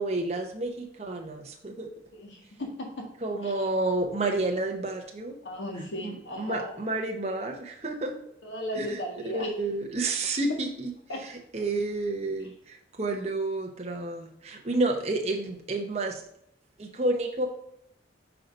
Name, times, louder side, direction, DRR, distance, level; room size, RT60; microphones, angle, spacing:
voice 1, 0.0-1.9 3.2-5.4 6.0-8.1 8.8-9.0 9.3-10.9 11.2-16.2 16.8-17.5, right 2 dB, 35° right, 2 dB, 0.9 m, -30 dB
voice 2, 2.1-3.1 3.4-3.7 5.4-6.8 8.4-9.5 11.1-11.2 12.4-12.5, left 1 dB, 90° left, 1 dB, 1.7 m, -36 dB
5.7 x 4.0 x 5.3 m, 0.73 s
head